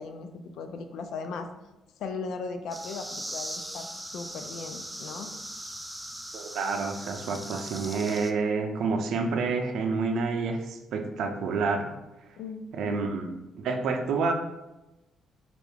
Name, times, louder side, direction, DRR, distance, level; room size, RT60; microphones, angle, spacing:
voice 1, 0.0-1.5 2.0-5.4 12.4-13.1, left 4 dB, 75° left, 7 dB, 0.4 m, -38 dB
sound 1, 2.7-8.3, right 1 dB, 5° right, 0.3 m, -39 dB
voice 2, 6.3-11.9 12.7-13.3 13.6-14.3, right 4 dB, 75° right, 5 dB, 0.5 m, -28 dB
4.4 x 2.5 x 3.4 m, 0.99 s
cardioid pair, 90°, 0 cm